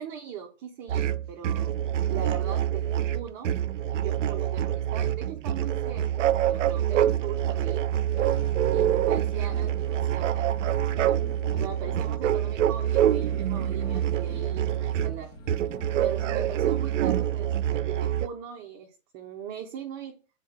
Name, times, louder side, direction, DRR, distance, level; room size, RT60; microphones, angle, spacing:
voice 1, 0.0-3.5 3.9-7.8 8.1-8.4 8.7-10.7 11.0-11.2 11.5-15.3 16.0-20.1, right 8 dB, 20° right, 2 dB, 0.5 m, -40 dB
sound 1, 0.9-18.3, right 11 dB, 65° right, 0.5 m, -26 dB
sound 2, 8.2-17.7, left 2 dB, 55° left, 1.7 m, -48 dB
7.3 x 4.0 x 3.3 m, 0.37 s
hypercardioid pair, 125°, 40 cm